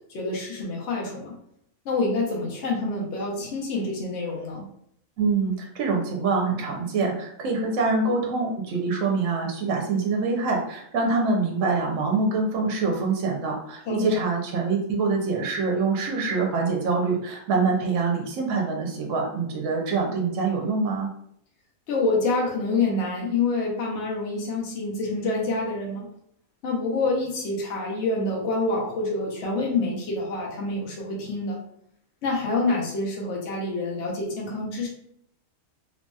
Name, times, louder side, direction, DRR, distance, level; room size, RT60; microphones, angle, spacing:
voice 1, 0.1-1.4 1.8-4.6 13.9-14.1 21.9-26.1 26.6-31.6 32.2-34.9, left 3 dB, 60° left, -3 dB, 1.0 m, -27 dB
voice 2, 5.2-21.1, right 4 dB, 70° right, 1 dB, 0.9 m, -25 dB
2.9 x 2.7 x 2.2 m, 0.71 s
omnidirectional pair, 1.4 m